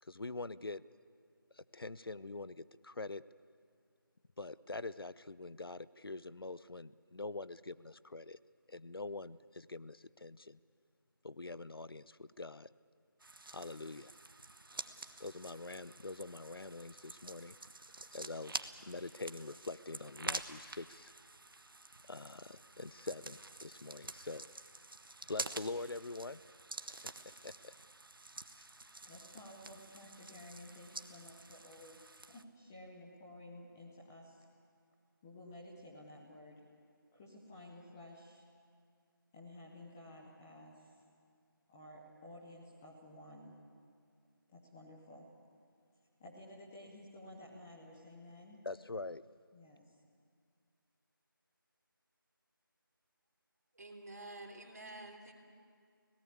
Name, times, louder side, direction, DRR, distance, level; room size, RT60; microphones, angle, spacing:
voice 1, 0.0-0.8 1.5-3.2 4.4-8.4 8.7-10.6 11.2-12.7 13.5-14.1 15.2-17.6 18.1-21.1 22.1-24.5 25.3-26.4 26.9-27.1 27.4-27.7 28.6-28.7 48.6-49.2, left 3 dB, 90° left, 17 dB, 0.7 m, -44 dB
sound 1, 13.2-32.4, right 2 dB, 70° right, 1.4 m, -48 dB
voice 2, 29.0-34.5 35.2-36.7 37.1-38.4 39.3-41.0 41.7-43.6 44.5-45.3 46.2-48.7 49.5-50.0, left 1 dB, 5° left, -3 dB, 0.8 m, -53 dB
voice 3, 53.7-55.3, right 2 dB, 45° right, 3 dB, 3.2 m, -49 dB
26.0 x 18.0 x 8.4 m, 2.2 s
figure-of-eight pair, 175°, 12 cm